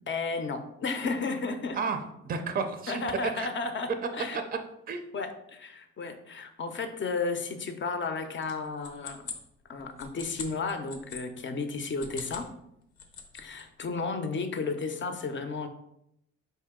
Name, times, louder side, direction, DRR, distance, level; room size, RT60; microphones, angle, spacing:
voice 1, 0.1-1.8 2.9-4.4 5.1-9.3 9.7-12.5 13.4-15.7, left 4 dB, 40° left, 7 dB, 0.6 m, -33 dB
voice 2, 1.7-3.5 4.3-4.4 4.9-5.0, right 5 dB, 30° right, 7 dB, 0.5 m, -32 dB
sound 1, 8.4-11.2 11.9-12.5 12.8-13.6, left 6 dB, 85° left, 0.7 m, -42 dB
4.6 x 2.7 x 3.6 m, 0.79 s
cardioid pair, 90°, 30 cm